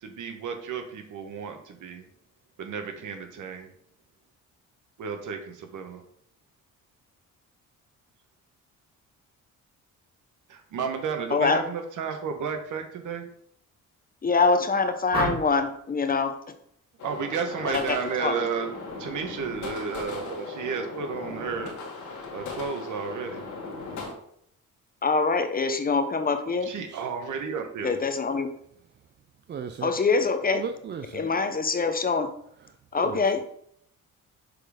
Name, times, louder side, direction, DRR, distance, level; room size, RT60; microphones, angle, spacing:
voice 1, 0.0-2.1 2.6-3.7 5.0-6.0 10.5-13.3 17.0-18.7 19.0-21.7 22.3-23.4 26.7-28.0, right 6 dB, 65° right, 6 dB, 1.3 m, -32 dB
voice 2, 11.3-11.6 14.2-16.5 17.7-18.4 25.0-26.7 27.8-28.5 29.8-30.6 31.1-32.3 32.9-33.4, left 4 dB, 25° left, 8 dB, 0.7 m, -24 dB
sound 1, 15.1-15.7 17.5-17.8 18.1-18.5, right 2 dB, 15° right, 2.0 m, -32 dB
sound 2, 17.0-24.1, left 4 dB, 65° left, 1.8 m, -38 dB
voice 3, 29.5-29.9 30.5-31.3 33.0-33.2, right 7 dB, 35° right, 8 dB, 0.4 m, -35 dB
6.6 x 4.2 x 4.9 m, 0.68 s
cardioid pair, 115°, 32 cm